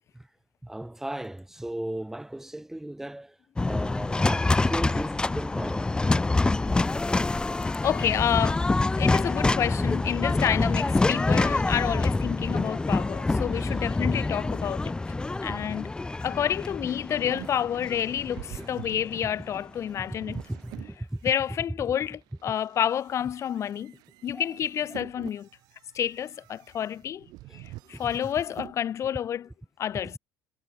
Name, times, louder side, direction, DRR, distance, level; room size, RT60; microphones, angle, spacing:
voice 1, 0.6-3.3 3.6-6.3 13.6-13.8 15.4-15.6 20.5-21.2 24.3-24.5 27.9-28.1, right 1 dB, 5° right, 1.9 m, -36 dB
sound 1, 3.6-19.8, left 3 dB, 15° left, 1.0 m, -26 dB
voice 2, 7.6-8.6 9.0-14.9 15.4-15.9 16.2-20.4 21.2-23.9 24.2-25.5 25.9-27.3 27.5-29.5 29.8-30.2, left 9 dB, 45° left, 1.4 m, -29 dB
sound 2, 16.8-21.6 22.1-28.8, right 19 dB, 80° right, 5.0 m, -47 dB
cardioid pair, 125°, 7 cm